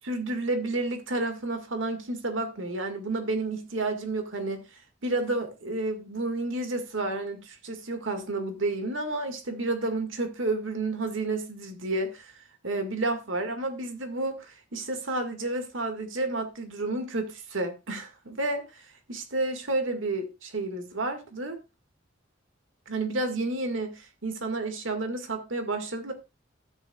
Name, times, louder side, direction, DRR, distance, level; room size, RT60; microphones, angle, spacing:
voice 1, 0.0-4.7 5.0-21.6 22.9-26.1, right 2 dB, 85° right, 2.0 m, -31 dB
13.5 x 9.9 x 2.4 m
head